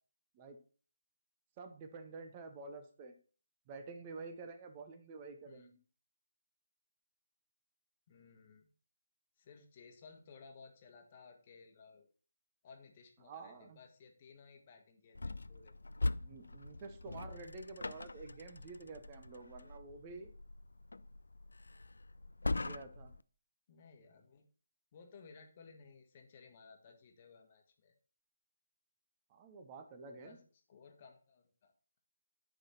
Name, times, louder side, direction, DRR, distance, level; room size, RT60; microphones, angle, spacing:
voice 1, 1.6-3.1 3.7-5.8 13.2-13.8 16.2-20.3 22.5-23.1 29.3-30.4, right 3 dB, 25° right, 7 dB, 0.8 m, -49 dB
voice 2, 8.1-8.7 9.4-12.1 12.6-15.7 23.7-24.4 24.9-27.9 30.0-30.4 30.7-32.0, left 5 dB, 35° left, 4 dB, 1.3 m, -58 dB
sound 1, 15.1-23.2, left 2 dB, 70° left, 0.3 m, -42 dB
10.0 x 4.0 x 4.2 m, 0.40 s
figure-of-eight pair, 150°, 0 cm